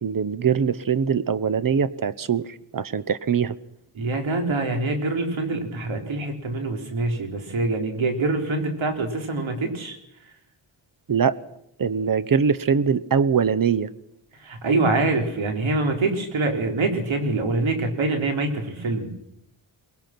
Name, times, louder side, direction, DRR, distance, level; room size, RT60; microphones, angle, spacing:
voice 1, 0.0-3.5 11.1-11.4 11.8-13.9, right 6 dB, 45° right, 17 dB, 1.0 m, -22 dB
voice 2, 3.9-10.0 14.4-19.1, right 2 dB, 80° right, 3 dB, 4.1 m, -25 dB
23.0 x 20.0 x 6.0 m, 0.79 s
cardioid pair, 90°, 47 cm